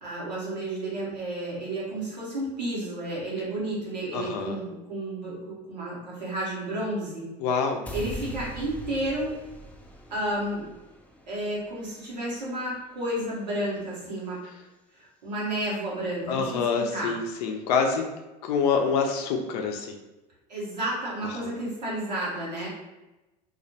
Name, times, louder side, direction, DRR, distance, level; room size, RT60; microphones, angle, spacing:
voice 1, 0.0-7.3 7.9-9.3 10.1-10.7 11.3-14.4 15.0-17.1 20.5-22.7, right 1 dB, 90° right, -6 dB, 0.9 m, -31 dB
voice 2, 4.1-4.6 7.4-7.8 16.3-18.1 18.4-20.0, left 5 dB, 70° left, 4 dB, 0.5 m, -26 dB
sound 1, 7.9-14.0, right 1 dB, 5° left, 0.3 m, -43 dB
2.3 x 2.1 x 2.7 m, 1.0 s
hypercardioid pair, 70°, 21 cm